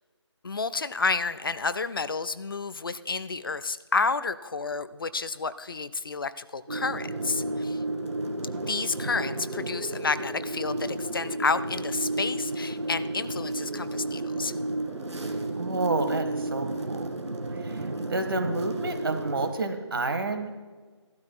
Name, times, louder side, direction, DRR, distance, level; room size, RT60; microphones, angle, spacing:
voice 1, 0.4-7.8 8.7-14.5 17.7-18.2, left 4 dB, 50° left, 14 dB, 0.5 m, -30 dB
sound 1, 6.7-19.5, right 2 dB, 80° right, 1.5 m, -32 dB
voice 2, 15.5-17.1 17.6-17.8 18.1-20.5, right 3 dB, 50° right, 7 dB, 1.4 m, -29 dB
16.5 x 12.5 x 2.2 m, 1.4 s
figure-of-eight pair, 160°, 15 cm